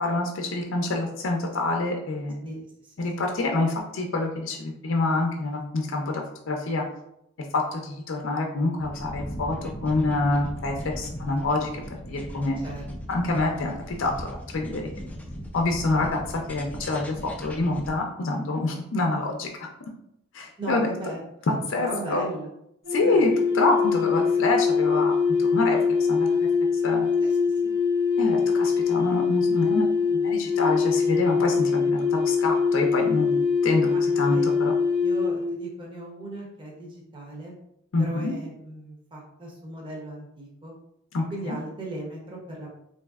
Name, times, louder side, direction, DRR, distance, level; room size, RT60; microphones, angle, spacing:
voice 1, 0.0-2.4 3.0-6.8 7.4-11.8 12.1-12.6 13.1-14.9 15.5-19.7 20.3-20.9 21.7-22.2 22.9-25.8 26.1-26.5 26.8-27.1 28.2-34.7 37.9-38.3 41.1-41.6, left 2 dB, 65° left, 2 dB, 0.5 m, -27 dB
voice 2, 2.4-2.9 12.6-12.9 20.6-21.2 21.5-22.5 23.0-23.4 27.2-27.8 33.9-34.0 34.3-34.5 35.0-37.6 38.0-40.7 41.3-42.7, right 1 dB, 25° right, -3 dB, 0.7 m, -37 dB
sound 1, 8.8-17.9, equal, 5° left, 0.4 m, -38 dB
sound 2, 22.8-35.6, left 5 dB, 55° right, 1.1 m, -23 dB
4.1 x 2.6 x 2.3 m, 0.78 s
head